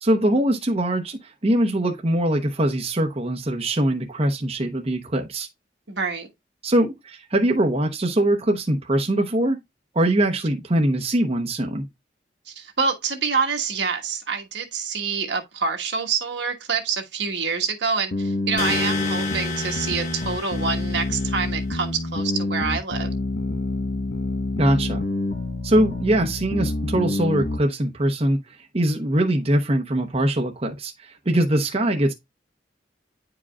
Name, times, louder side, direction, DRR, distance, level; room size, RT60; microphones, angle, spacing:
voice 1, 0.0-5.5 6.6-9.6 9.9-11.9 24.6-25.0 25.6-32.1, right 1 dB, 35° right, 0.8 m, -22 dB
voice 2, 5.9-6.3 12.5-23.1, right 5 dB, 70° right, 1.4 m, -26 dB
sound 1, 18.1-27.6, left 2 dB, 80° left, 1.1 m, -27 dB
sound 2, 18.6-21.5, left 4 dB, 40° left, 2.2 m, -31 dB
9.7 x 4.9 x 2.3 m
head